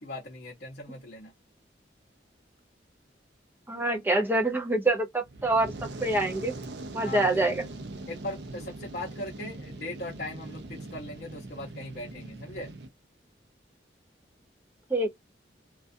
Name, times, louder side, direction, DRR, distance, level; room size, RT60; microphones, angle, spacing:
voice 1, 0.0-1.3 7.0-7.5 8.1-12.7, left 2 dB, 55° left, 0.7 m, -39 dB
voice 2, 3.7-5.7 6.0-6.5 6.9-7.6 14.9-15.1, right 2 dB, 10° right, 0.5 m, -25 dB
Fire, 5.2-12.9, right 2 dB, 70° right, 0.5 m, -41 dB
2.3 x 2.2 x 2.5 m
head